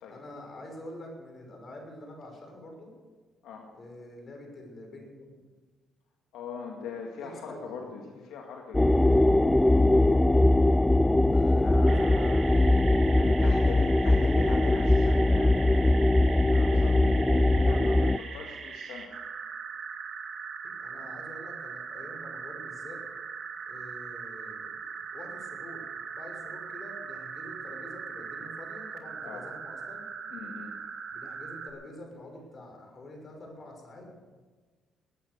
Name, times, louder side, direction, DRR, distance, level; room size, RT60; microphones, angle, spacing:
voice 1, 0.1-2.9 3.7-5.4 7.2-7.9 11.3-13.0 20.6-23.0 23.7-24.8 25.1-25.8 26.1-30.0 31.1-34.2, left 1 dB, 45° left, 2 dB, 6.1 m, -46 dB
voice 2, 6.3-9.2 11.6-12.5 13.1-16.2 16.5-19.1 29.2-29.5 30.3-30.7, left 5 dB, 85° left, 1 dB, 1.9 m, -41 dB
sound 1, 8.7-18.2, left 1 dB, 10° left, 0.4 m, -21 dB
sound 2, 11.8-31.7, right 5 dB, 55° right, 2.3 m, -40 dB
21.0 x 9.4 x 6.7 m, 1.4 s
cardioid pair, 85°, 0 cm